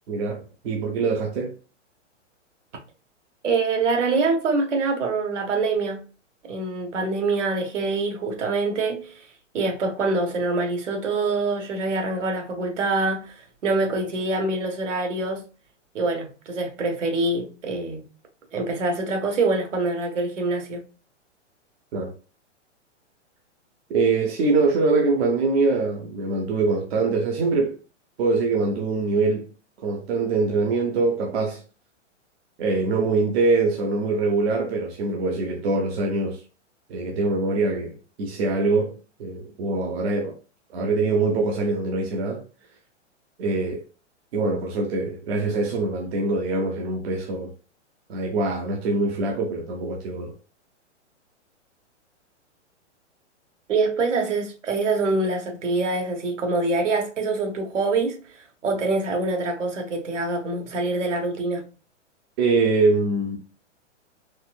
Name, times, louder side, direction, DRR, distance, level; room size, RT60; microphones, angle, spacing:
voice 1, 0.1-1.5 21.9-22.1 23.9-27.8 28.2-29.5 29.8-31.6 32.6-36.4 36.9-40.4 40.7-42.4 43.4-43.8 44.3-47.5 48.1-50.3 62.4-63.4, right 3 dB, 60° right, 0.8 m, -23 dB
voice 2, 3.4-6.0 6.4-9.1 9.5-15.4 15.9-18.0 18.5-20.8 53.7-58.2 58.6-61.6, right 3 dB, 80° right, 1.4 m, -25 dB
4.2 x 2.5 x 2.3 m
hypercardioid pair, 135°, 36 cm